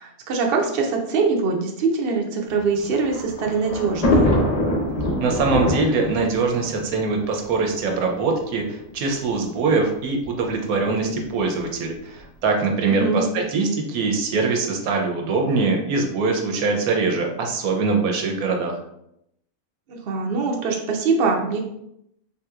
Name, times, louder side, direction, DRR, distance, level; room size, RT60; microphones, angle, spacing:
voice 1, 0.0-4.3 12.9-13.2 19.9-21.6, right 4 dB, 60° right, 1 dB, 0.6 m, -23 dB
Thunder, 2.6-7.9 8.7-8.8 9.1-9.2 10.2-10.5, left 1 dB, 50° left, 0.5 m, -24 dB
voice 2, 5.2-18.8, right 4 dB, 85° right, 2 dB, 1.1 m, -23 dB
3.6 x 2.8 x 2.3 m, 0.78 s
omnidirectional pair, 1.5 m